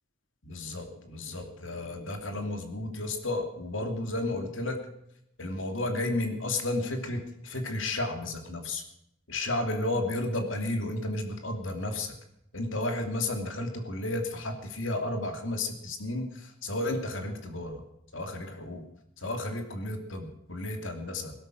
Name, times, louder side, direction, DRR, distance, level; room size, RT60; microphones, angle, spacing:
voice 1, 0.4-4.8 5.4-8.8 9.3-12.1 12.5-17.7 18.1-18.8 19.2-21.3, left 2 dB, 75° left, 5 dB, 2.8 m, -32 dB
17.0 x 12.5 x 6.4 m, 0.78 s
head